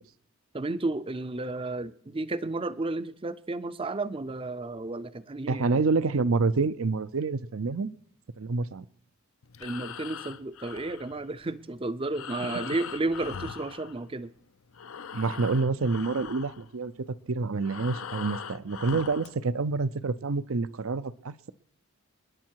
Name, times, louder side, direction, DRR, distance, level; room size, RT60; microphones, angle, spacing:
voice 1, 0.5-5.8 9.6-14.3, right 2 dB, 25° right, 0.5 m, -32 dB
voice 2, 5.5-7.9 8.4-8.9 15.1-16.9 17.3-21.5, right 4 dB, 70° right, 0.6 m, -27 dB
Breathing, 9.4-14.4 14.7-19.4, left 7 dB, 70° left, 0.6 m, -41 dB
28.0 x 10.5 x 4.7 m
head